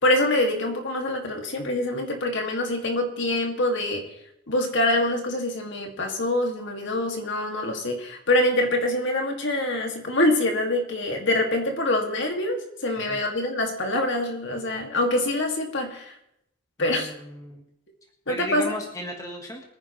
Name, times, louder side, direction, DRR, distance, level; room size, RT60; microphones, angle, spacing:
voice 1, 0.0-4.1 4.5-16.2 16.8-17.1 18.3-18.7, left 1 dB, 60° left, 2 dB, 2.3 m, -25 dB
voice 2, 16.8-17.6 18.3-19.6, left 1 dB, 15° left, 2 dB, 1.4 m, -36 dB
23.0 x 9.8 x 3.2 m, 0.80 s
head